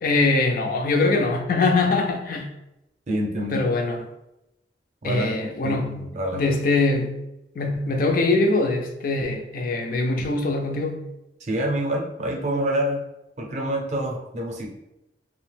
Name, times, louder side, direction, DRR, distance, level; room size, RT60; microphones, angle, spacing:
voice 1, 0.0-2.5 3.5-4.0 5.0-6.0 6.3-7.2 7.6-11.0, left 3 dB, 50° left, 3 dB, 0.3 m, -22 dB
voice 2, 3.1-3.6 5.0-5.4 5.6-6.4 11.4-13.0 13.4-14.7, right 1 dB, 40° right, 0 dB, 0.5 m, -27 dB
2.7 x 2.0 x 3.2 m, 0.89 s
head